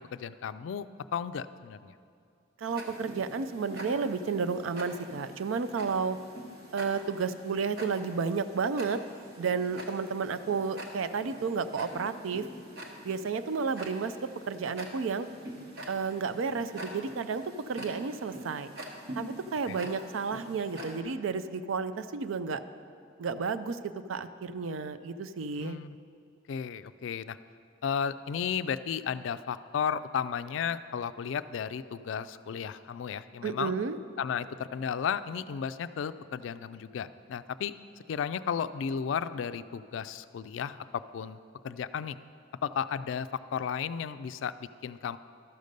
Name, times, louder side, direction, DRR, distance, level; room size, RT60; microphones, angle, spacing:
voice 1, 0.0-1.9 19.7-19.9 25.6-26.0 26.5-27.4 27.8-33.7 34.2-37.7 38.1-41.4 41.6-42.2 42.6-45.2, left 7 dB, 70° left, 13 dB, 0.3 m, -34 dB
voice 2, 2.6-6.2 6.7-9.0 9.4-12.4 13.0-15.3 15.9-18.7 19.2-22.6 23.2-25.8 33.4-34.0, right 5 dB, 85° right, 12 dB, 0.4 m, -32 dB
Tick-tock, 2.7-21.0, right 1 dB, 55° right, 1.2 m, -45 dB
12.5 x 5.2 x 6.6 m, 2.4 s
head